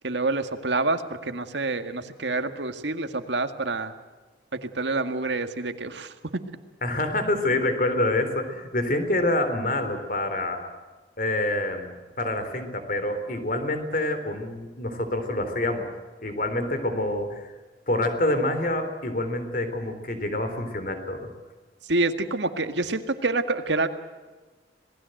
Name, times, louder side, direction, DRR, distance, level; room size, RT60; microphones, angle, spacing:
voice 1, 0.0-3.9 4.5-6.4 21.8-23.9, right 3 dB, 75° right, 8 dB, 1.9 m, -27 dB
voice 2, 6.8-10.7 11.2-11.9 12.2-15.9 16.2-17.5 17.9-21.3, left 1 dB, 45° left, 8 dB, 3.7 m, -27 dB
27.0 x 19.5 x 7.9 m, 1.3 s
head